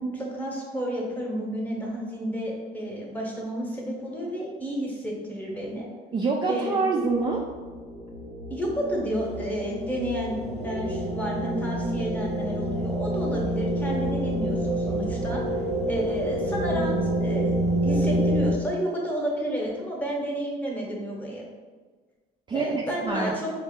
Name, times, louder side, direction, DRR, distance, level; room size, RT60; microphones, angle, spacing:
voice 1, 0.0-5.9 6.5-6.8 8.5-15.4 15.9-17.5 17.8-21.4 22.5-23.5, equal, 10° left, -3 dB, 0.9 m, -31 dB
voice 2, 6.1-7.4 22.5-23.3, right 4 dB, 25° right, -1 dB, 0.4 m, -26 dB
sound 1, 7.2-18.5, right 1 dB, 70° right, 0.8 m, -28 dB
sound 2, 9.2-18.3, equal, 40° left, 0.5 m, -39 dB
4.4 x 2.0 x 3.5 m, 1.4 s
cardioid pair, 110°, 17 cm